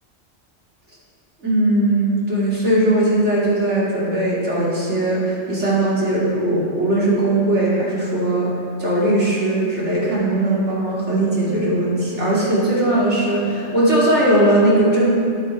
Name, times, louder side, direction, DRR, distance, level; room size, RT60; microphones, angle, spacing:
voice 1, 1.4-8.5 8.8-15.1, right 1 dB, 60° right, -7 dB, 3.3 m, -19 dB
14.0 x 8.8 x 4.6 m, 2.4 s
omnidirectional pair, 1.3 m